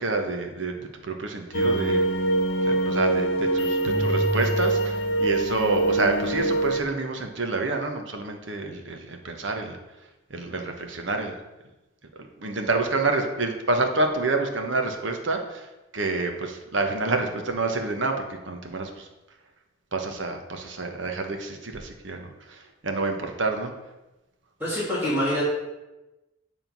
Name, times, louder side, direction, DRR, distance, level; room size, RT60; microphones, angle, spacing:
voice 1, 0.0-2.1 2.6-9.8 10.3-11.4 12.1-19.1 19.9-23.7, right 3 dB, 65° right, 4 dB, 1.1 m, -28 dB
sound 1, 1.5-6.8, right 2 dB, 60° left, 1.0 m, -24 dB
voice 2, 24.6-25.4, left 1 dB, 10° right, -9 dB, 3.0 m, -25 dB
9.3 x 3.7 x 6.0 m, 1.0 s
head